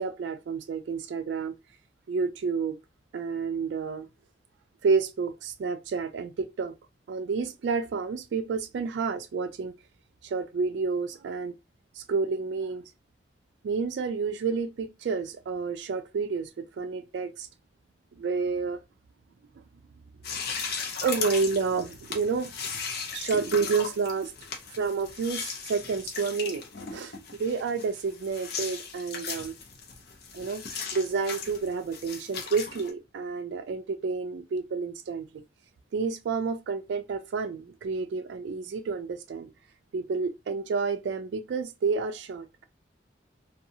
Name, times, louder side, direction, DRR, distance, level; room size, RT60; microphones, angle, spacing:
voice 1, 0.0-1.5 2.1-2.8 3.1-4.1 4.8-6.7 7.1-9.7 10.2-11.5 12.0-12.8 13.6-17.5 18.2-18.8 21.0-22.5 23.1-24.3 24.7-26.6 26.9-27.1 27.4-29.5 30.3-35.2 35.9-39.5 39.9-42.6, right 5 dB, 65° right, 0.3 m, -30 dB
sound 1, 20.2-32.9, left 5 dB, 55° left, 0.6 m, -37 dB
2.6 x 2.3 x 2.7 m
head